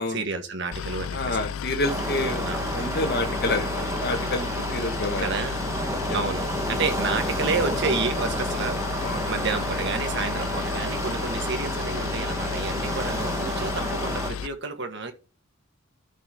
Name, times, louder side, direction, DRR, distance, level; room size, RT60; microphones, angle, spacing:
voice 1, 0.0-1.5 2.4-2.7 5.2-5.5 6.1-8.8 9.2-15.1, right 4 dB, 55° right, 1.7 m, -30 dB
Boat Water vehicle, 0.7-14.5, left 7 dB, 80° left, 0.4 m, -33 dB
voice 2, 1.1-2.5 2.7-5.3 6.1-6.2 9.0-9.3, left 2 dB, 50° left, 1.4 m, -28 dB
sound 1, 1.8-14.3, right 1 dB, 15° right, 1.3 m, -30 dB
12.5 x 5.5 x 3.6 m
head